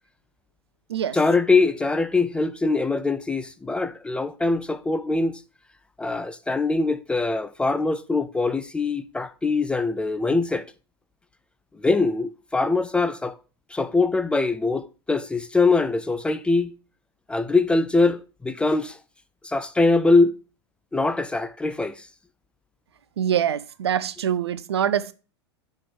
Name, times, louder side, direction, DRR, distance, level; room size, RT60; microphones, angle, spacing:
voice 1, 1.1-5.4 6.0-10.7 11.8-13.4 13.7-16.7 17.3-19.0 19.4-20.4 20.9-22.1, left 3 dB, 5° left, 0.3 m, -22 dB
voice 2, 23.2-25.1, right 9 dB, 70° right, 0.5 m, -24 dB
6.0 x 4.3 x 4.7 m
figure-of-eight pair, 90°, 14 cm